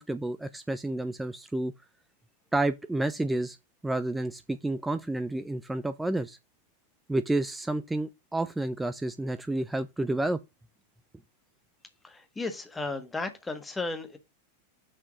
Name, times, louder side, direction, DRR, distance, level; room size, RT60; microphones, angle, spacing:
voice 1, 0.0-1.7 2.5-3.6 3.8-6.4 7.1-10.4, right 2 dB, 5° right, 0.4 m, -30 dB
voice 2, 12.0-14.2, left 3 dB, 10° left, 1.5 m, -34 dB
6.5 x 4.4 x 6.1 m
figure-of-eight pair, 90°, 0 cm